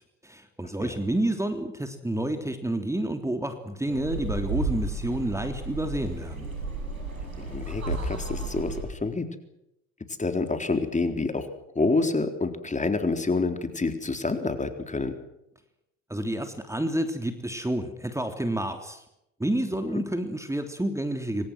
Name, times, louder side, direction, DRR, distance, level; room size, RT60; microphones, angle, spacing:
voice 1, 0.2-6.5 16.1-19.0 19.4-21.5, right 1 dB, 5° right, 6 dB, 3.4 m, -29 dB
sound 1, 3.8-8.8, right 2 dB, 85° right, 7.7 m, -33 dB
voice 2, 7.4-9.3 10.2-11.5 11.8-15.2 19.9-20.0, left 3 dB, 15° left, 7 dB, 3.9 m, -27 dB
27.0 x 26.0 x 6.3 m, 0.82 s
figure-of-eight pair, 60°, 41 cm